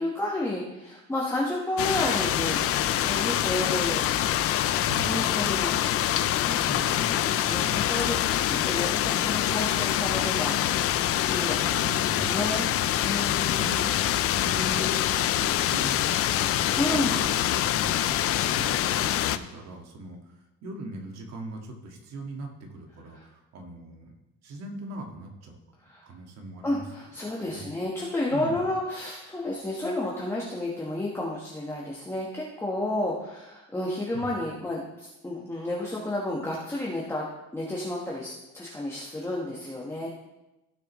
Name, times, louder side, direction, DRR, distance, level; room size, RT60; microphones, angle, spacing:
voice 1, 0.0-4.0 4.3-5.8 6.4-6.7 7.1-10.9 11.3-12.7 13.0-13.9 16.5-17.2 23.1-23.2 25.8-26.1 26.6-37.3 37.5-40.1, left 1 dB, 10° left, -4 dB, 1.2 m, -31 dB
sound 1, 1.8-19.4, left 12 dB, 50° left, 0.5 m, -25 dB
voice 2, 4.8-5.3 6.7-7.3 11.7-12.8 13.3-13.8 14.2-16.0 16.4-16.5 17.1-18.2 18.4-24.1 24.4-25.6 26.0-26.8 27.3-27.7 28.3-28.7 34.1-34.3, right 2 dB, 65° right, 2 dB, 1.9 m, -40 dB
16.0 x 6.7 x 3.1 m, 0.99 s
cardioid pair, 140°, 29 cm